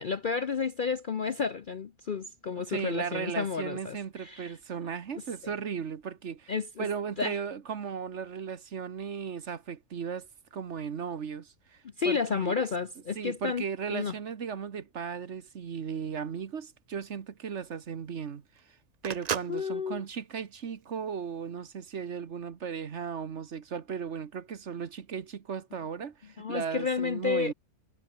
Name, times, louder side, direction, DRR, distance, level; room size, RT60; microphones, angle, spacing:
voice 1, 0.0-4.5 5.4-5.5 6.5-6.9 7.2-7.4 12.0-13.6 13.9-14.1 19.5-20.0 26.4-27.5, left 5 dB, 45° left, 0.7 m, -31 dB
voice 2, 2.5-12.7 13.1-18.4 19.0-27.5, right 6 dB, 55° right, 1.4 m, -36 dB
Telephone, 16.1-21.4, right 8 dB, 70° right, 0.3 m, -39 dB
omnidirectional pair, 1.6 m